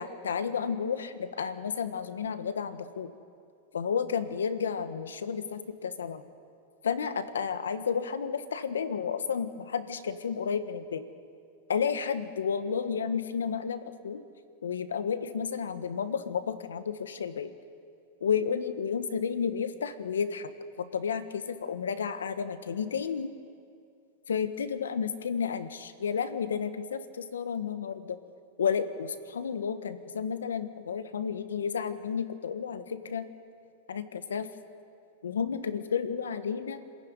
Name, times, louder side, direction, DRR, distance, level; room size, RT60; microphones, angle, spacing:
voice 1, 0.0-3.1 3.7-6.2 6.8-11.0 11.7-14.2 14.6-17.5 18.2-20.5 20.9-23.3 24.3-28.2 28.6-33.2 33.9-34.5 35.2-36.8, left 6 dB, 90° left, 10 dB, 1.5 m, -31 dB
26.5 x 15.5 x 9.7 m, 2.3 s
hypercardioid pair, 120°, 0 cm